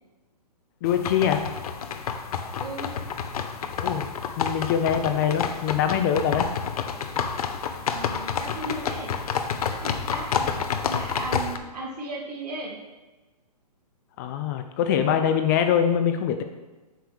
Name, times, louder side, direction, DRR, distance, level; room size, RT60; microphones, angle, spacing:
sound 1, 0.8-11.6, left 7 dB, 60° left, 0.7 m, -29 dB
voice 1, 0.8-1.4 3.8-4.1 4.4-6.5 14.2-16.4, left 8 dB, 25° left, 7 dB, 0.4 m, -23 dB
voice 2, 2.6-3.0 7.9-9.2 9.7-12.8, right 2 dB, 70° right, -2 dB, 2.5 m, -36 dB
8.2 x 3.4 x 6.2 m, 1.2 s
hypercardioid pair, 145°, 21 cm